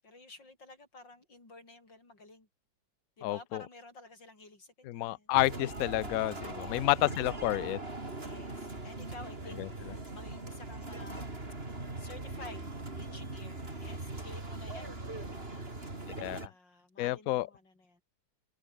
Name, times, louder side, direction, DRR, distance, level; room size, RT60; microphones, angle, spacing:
voice 1, 0.0-2.5 3.2-5.3 6.6-7.1 8.2-12.7 13.0-15.1 15.5-18.0, left 2 dB, 65° left, 7.3 m, -52 dB
voice 2, 3.2-3.6 4.8-7.8 9.6-9.7 16.2-16.5 17.0-17.5, left 17 dB, 85° left, 0.7 m, -30 dB
sound 1, 5.3-16.5, right 2 dB, 30° right, 3.9 m, -41 dB
omnidirectional pair, 2.1 m